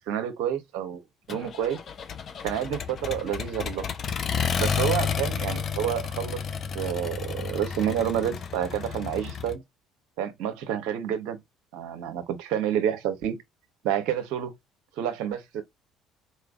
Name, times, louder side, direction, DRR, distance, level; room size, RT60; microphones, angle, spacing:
voice 1, 0.1-1.0 1.3-1.8 2.4-3.8 4.6-6.4 6.7-9.6 10.2-11.4 11.7-13.4 13.8-14.5 15.0-15.6, right 10 dB, 70° right, 0.7 m, -29 dB
Accelerating revving vroom, 1.3-9.6, left 6 dB, 45° left, 0.6 m, -31 dB
4.2 x 3.2 x 2.3 m
hypercardioid pair, 60°, 0 cm